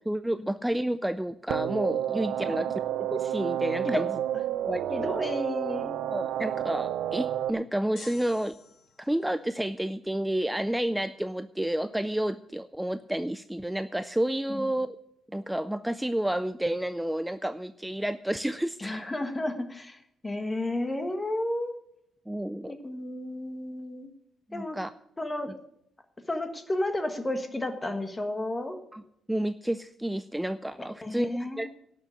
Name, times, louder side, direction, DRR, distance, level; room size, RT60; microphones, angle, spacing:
voice 1, 0.0-2.7 3.1-4.2 4.6-5.2 6.1-8.5 9.0-15.0 15.3-18.9 22.3-22.7 24.5-24.9 28.9-29.0 29.3-31.7, right 1 dB, 5° right, 12 dB, 0.4 m, -30 dB
sound 1, 1.5-7.5, right 11 dB, 80° right, 0.6 m, -30 dB
voice 2, 4.9-6.0 14.5-14.7 18.8-21.8 22.7-24.1 24.5-24.8 25.2-25.5 26.3-28.8 31.0-31.7, left 1 dB, 15° left, 7 dB, 1.5 m, -32 dB
sound 2, 8.0-9.3, left 3 dB, 45° left, 4.7 m, -48 dB
11.5 x 6.8 x 9.3 m, 0.77 s
cardioid pair, 150°, 0 cm